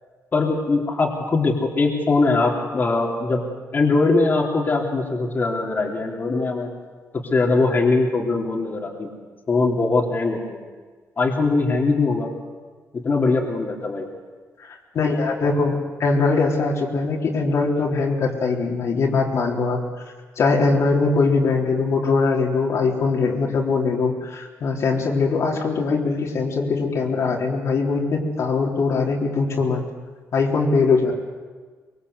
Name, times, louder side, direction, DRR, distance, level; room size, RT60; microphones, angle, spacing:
voice 1, 0.3-3.5 3.7-6.7 7.1-9.1 9.5-10.6 11.2-12.3 12.9-14.1, left 3 dB, 35° left, -1 dB, 3.4 m, -21 dB
voice 2, 14.7-19.8 20.4-29.8 30.3-31.1, left 4 dB, 60° left, -1 dB, 3.8 m, -21 dB
24.0 x 23.0 x 8.1 m, 1.4 s
cardioid pair, 130°, 6 cm